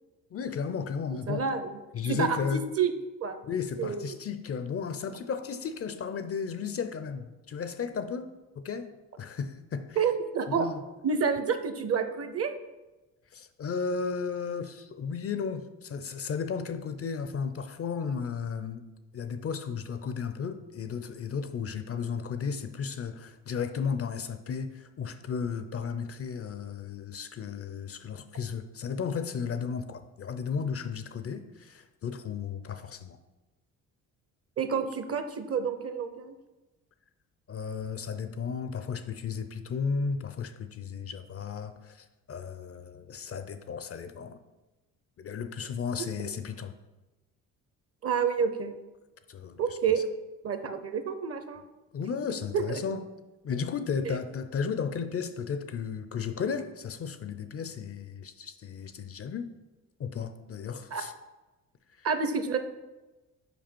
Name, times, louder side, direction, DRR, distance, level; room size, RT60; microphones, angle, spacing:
voice 1, 0.3-1.5 1.9-2.6 3.4-8.9 9.2-10.0 10.5-10.8 13.3-18.8 19.1-33.2 37.5-44.4 45.2-46.7 49.3-49.6 51.9-53.0 53.4-59.5 60.0-61.1 62.0-62.1, left 6 dB, 40° left, 10 dB, 0.5 m, -34 dB
voice 2, 1.3-1.8 2.1-2.9 3.2-3.4 3.8-4.2 10.0-10.7 11.0-12.5 34.6-36.4 46.2-46.3 48.0-48.7 49.6-50.0 50.4-51.6 52.5-52.8 54.0-54.2 60.9-61.0 62.0-62.6, right 6 dB, 40° right, 9 dB, 0.7 m, -29 dB
5.1 x 5.0 x 4.5 m, 1.1 s
supercardioid pair, 65°, 38 cm